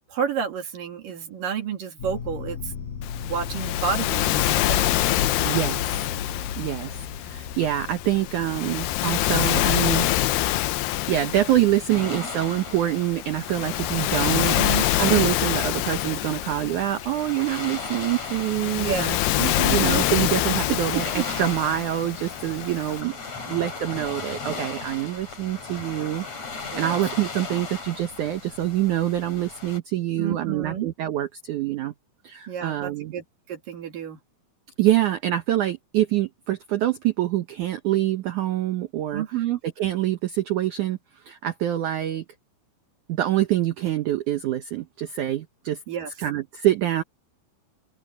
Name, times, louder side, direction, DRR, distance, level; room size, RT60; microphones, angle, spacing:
voice 1, 0.1-2.7 3.2-5.0 14.4-14.9 18.8-19.1 19.4-20.0 20.7-21.2 26.7-27.0 30.2-30.9 32.5-34.2 39.1-39.6 45.9-46.1, right 8 dB, 55° right, 3.6 m, -30 dB
sound 1, 2.0-10.6, left 6 dB, 60° left, 5.3 m, -35 dB
Waves surf, 3.0-23.0, left 15 dB, 80° left, 2.8 m, -26 dB
voice 2, 5.4-6.1 6.6-10.1 10.6-14.6 14.9-19.2 19.7-21.1 21.3-23.2 23.5-26.2 26.6-31.9 32.2-33.1 34.8-39.2 39.8-41.0 41.2-42.3 43.1-45.8 46.2-47.0, right 13 dB, 80° right, 1.7 m, -25 dB
sound 2, 11.9-29.8, left 4 dB, 40° left, 5.7 m, -37 dB
open air
omnidirectional pair, 4.9 m